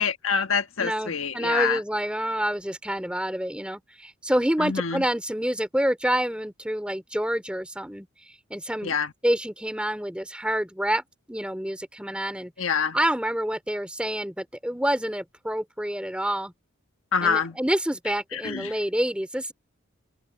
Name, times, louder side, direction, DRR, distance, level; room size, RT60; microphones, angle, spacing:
voice 1, 0.0-1.8 4.6-5.0 8.8-9.1 12.6-13.0 17.1-17.6 18.3-18.7, left 6 dB, 75° left, 1.3 m, -26 dB
voice 2, 0.8-8.1 8.5-8.9 9.2-11.0 11.3-12.5 12.9-16.5 17.2-19.5, equal, 5° right, 2.9 m, -27 dB
open air
head